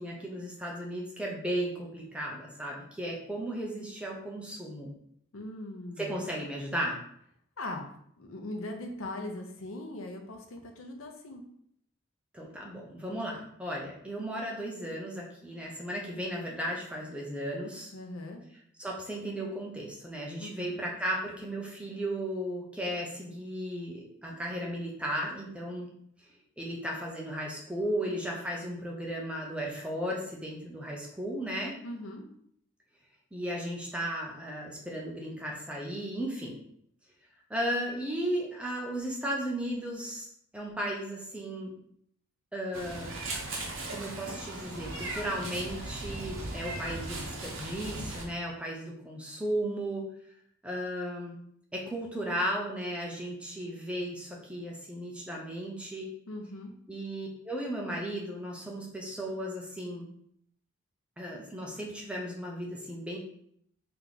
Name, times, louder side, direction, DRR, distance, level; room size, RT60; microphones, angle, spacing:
voice 1, 0.0-4.9 6.0-7.0 12.3-17.9 18.8-25.9 26.6-31.8 33.3-36.6 37.5-40.3 40.5-41.7 42.5-43.2 43.9-50.0 50.6-51.4 51.7-56.1 56.9-60.1 61.2-63.2, right 1 dB, 5° right, -2 dB, 0.6 m, -35 dB
voice 2, 5.3-6.2 7.6-7.9 8.2-11.4 17.9-18.4 20.4-20.7 31.8-32.2 56.3-56.7, left 1 dB, 75° left, 3 dB, 0.7 m, -40 dB
Meow, 42.7-48.2, right 2 dB, 75° right, 0.9 m, -38 dB
3.4 x 3.0 x 3.8 m, 0.69 s
head